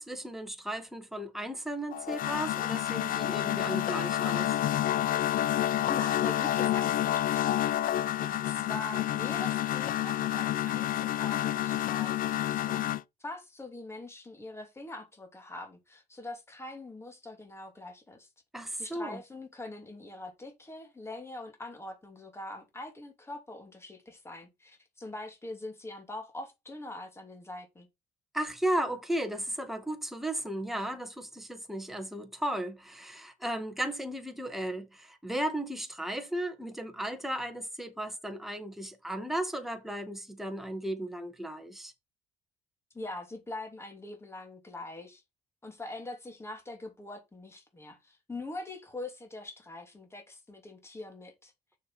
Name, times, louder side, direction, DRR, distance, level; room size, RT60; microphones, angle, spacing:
voice 1, 0.0-4.6 18.5-19.2 28.3-41.9, right 1 dB, ahead, 1.8 m, -35 dB
sound 1, 1.9-13.0, left 12 dB, 55° left, 0.5 m, -29 dB
voice 2, 5.9-7.5 8.2-12.8 13.2-18.3 18.8-27.9 42.9-45.2 45.6-51.5, left 2 dB, 15° left, 2.9 m, -43 dB
6.7 x 6.6 x 4.2 m
cardioid pair, 110°, 17 cm